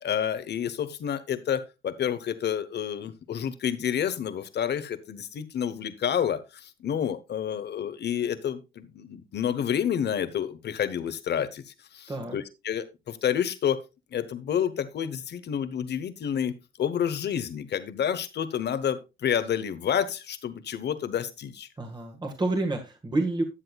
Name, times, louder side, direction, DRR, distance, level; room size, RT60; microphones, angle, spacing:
voice 1, 0.0-13.8 14.1-21.7, left 9 dB, 60° left, 13 dB, 1.1 m, -29 dB
voice 2, 12.1-12.4 21.8-23.4, right 2 dB, 20° right, 4 dB, 1.6 m, -29 dB
12.5 x 7.7 x 2.3 m, 0.25 s
cardioid pair, 90°, 20 cm